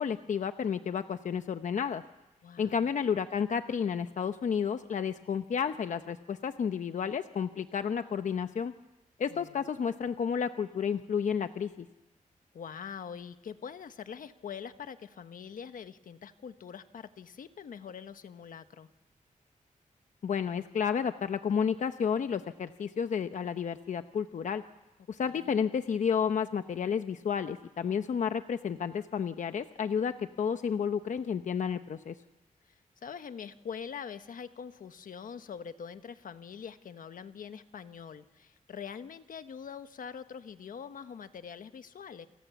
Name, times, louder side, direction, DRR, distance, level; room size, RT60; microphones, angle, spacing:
voice 1, 0.0-2.0 2.6-8.7 9.2-11.9 20.2-24.6 25.1-32.1, left 7 dB, 65° left, 9 dB, 0.8 m, -31 dB
voice 2, 2.4-2.9 9.3-9.5 12.5-18.9 25.2-25.6 32.7-32.8 33.0-42.3, left 7 dB, 85° left, 9 dB, 1.3 m, -44 dB
28.5 x 27.5 x 7.1 m, 1.1 s
wide cardioid pair, 170°, 14 cm